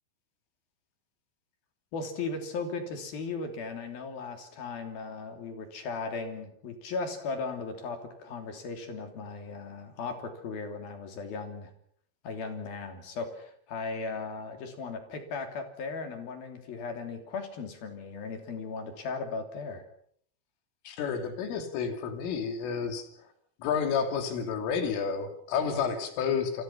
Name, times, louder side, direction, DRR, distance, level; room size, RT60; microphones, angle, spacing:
voice 1, 1.9-11.7 12.2-19.8, left 4 dB, 50° left, 6 dB, 4.5 m, -37 dB
voice 2, 20.9-23.1 23.6-26.6, left 6 dB, 80° left, 7 dB, 5.4 m, -30 dB
28.5 x 25.0 x 5.9 m, 0.63 s
omnidirectional pair, 5.7 m